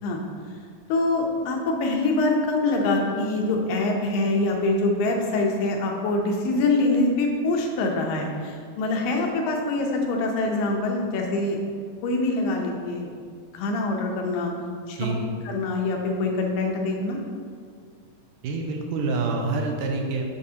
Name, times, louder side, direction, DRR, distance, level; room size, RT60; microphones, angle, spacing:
voice 1, 0.9-11.6 12.0-13.1 13.5-14.5 14.9-15.1 15.5-17.2, left 2 dB, 90° left, 1 dB, 2.5 m, -24 dB
voice 2, 15.0-15.3 18.4-20.3, right 3 dB, 80° right, 2 dB, 2.1 m, -27 dB
9.8 x 4.0 x 2.8 m, 2.1 s
omnidirectional pair, 3.9 m